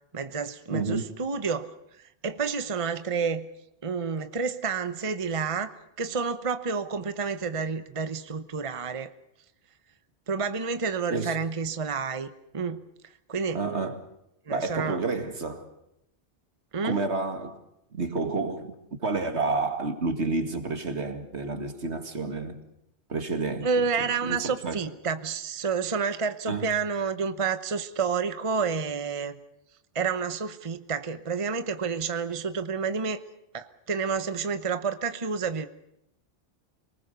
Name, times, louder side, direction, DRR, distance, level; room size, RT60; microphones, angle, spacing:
voice 1, 0.1-1.7 2.0-3.5 3.8-9.1 10.3-12.3 12.5-12.8 13.3-13.6 14.5-15.0 16.7-17.0 23.6-29.3 29.9-33.2 33.5-35.7, right 5 dB, 30° right, 1.0 m, -29 dB
voice 2, 0.7-1.1 11.1-11.4 13.5-14.1 14.5-15.7 16.8-17.6 17.9-18.7 19.0-22.6 23.1-23.8 24.2-24.9 26.5-26.7, right 3 dB, 75° right, 2.5 m, -30 dB
27.0 x 19.5 x 6.8 m
omnidirectional pair, 1.2 m